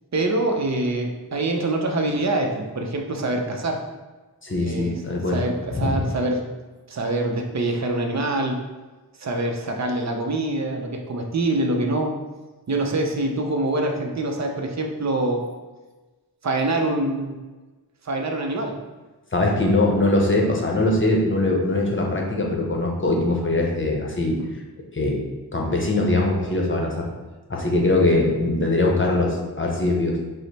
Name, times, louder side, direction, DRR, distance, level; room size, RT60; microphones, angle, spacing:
voice 1, 0.1-3.8 4.6-6.5 6.9-8.6 9.1-12.2 12.7-15.5 16.4-17.4 18.0-18.8, right 2 dB, 45° right, 2 dB, 0.6 m, -25 dB
voice 2, 4.4-5.4 5.7-6.0 19.3-24.4 24.9-25.2 25.5-27.1 27.5-30.2, left 2 dB, 30° left, 0 dB, 0.8 m, -21 dB
4.8 x 2.1 x 4.0 m, 1.2 s
wide cardioid pair, 70°, 38 cm